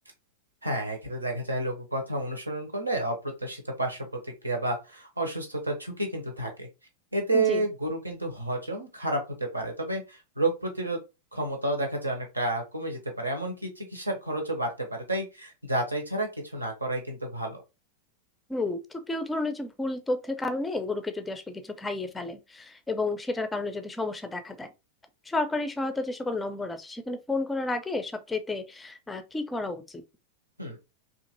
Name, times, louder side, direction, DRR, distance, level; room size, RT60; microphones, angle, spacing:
voice 1, 0.6-6.7 7.1-11.0 11.3-17.6 30.6-30.8, right 2 dB, 80° right, 0.8 m, -30 dB
voice 2, 18.5-24.7 25.3-30.0, left 2 dB, 10° left, 0.4 m, -31 dB
2.8 x 2.5 x 2.6 m
figure-of-eight pair, 90°, 0 cm